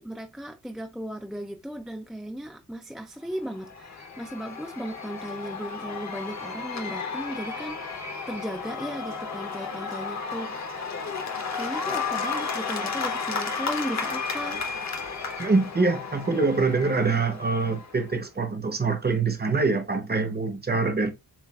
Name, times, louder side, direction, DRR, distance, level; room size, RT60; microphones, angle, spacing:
voice 1, 0.0-10.7 11.5-14.6, equal, ahead, 0.3 m, -36 dB
Cheering / Applause / Crowd, 3.4-18.1, left 5 dB, 50° left, 0.8 m, -33 dB
voice 2, 15.4-21.1, right 4 dB, 25° right, 0.8 m, -24 dB
7.1 x 2.4 x 2.3 m
wide cardioid pair, 145°, 36 cm